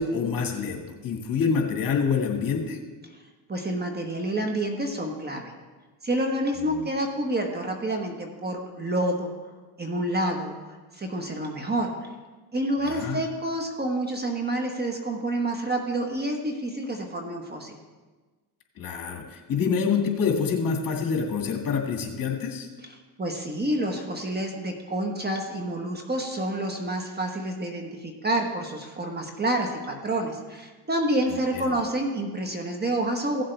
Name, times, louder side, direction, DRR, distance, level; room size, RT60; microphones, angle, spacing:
voice 1, 0.0-2.8 6.7-6.8 12.8-13.2 18.8-22.7 31.3-31.7, left 5 dB, 45° left, 2 dB, 2.1 m, -27 dB
voice 2, 3.5-5.5 6.0-9.3 9.8-12.1 12.5-17.7 22.8-33.4, right 1 dB, 20° right, 3 dB, 1.4 m, -28 dB
16.0 x 7.5 x 3.5 m, 1.3 s
supercardioid pair, 95°, 46 cm